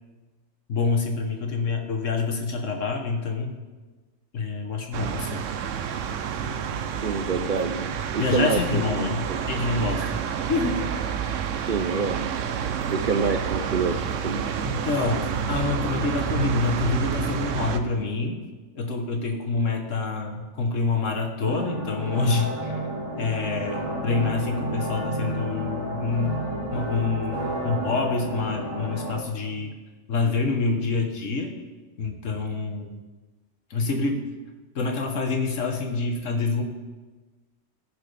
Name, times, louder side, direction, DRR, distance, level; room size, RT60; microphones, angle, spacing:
voice 1, 0.7-3.5 4.3-5.4 8.2-10.1 10.5-10.9 14.6-18.4 18.7-22.8 23.2-26.4 26.7-29.7 30.1-31.5 32.0-32.9 33.7-34.2 34.7-36.6, left 4 dB, 75° left, 3 dB, 1.6 m, -27 dB
sound 1, 4.9-17.8, right 7 dB, 75° right, 1.0 m, -29 dB
voice 2, 7.0-9.4 11.7-12.3 12.9-14.4, right 5 dB, 55° right, 6 dB, 0.6 m, -27 dB
sound 2, 21.4-29.2, right 1 dB, 30° right, 2.3 m, -31 dB
19.0 x 6.3 x 3.4 m, 1.3 s
omnidirectional pair, 1.3 m